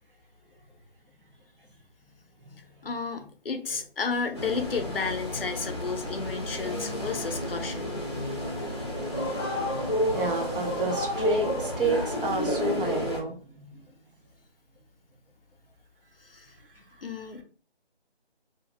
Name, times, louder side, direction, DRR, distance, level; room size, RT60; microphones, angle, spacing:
voice 1, 2.8-7.9 8.8-9.0 9.6-9.7 16.2-16.5 17.0-17.4, left 5 dB, 65° left, 7 dB, 0.6 m, -32 dB
sound 1, 4.4-13.2, equal, 25° left, 0.7 m, -30 dB
voice 2, 10.1-13.8 16.7-16.8, right 2 dB, 55° right, 1 dB, 0.9 m, -30 dB
2.7 x 2.1 x 2.9 m, 0.42 s
figure-of-eight pair, 175°, 31 cm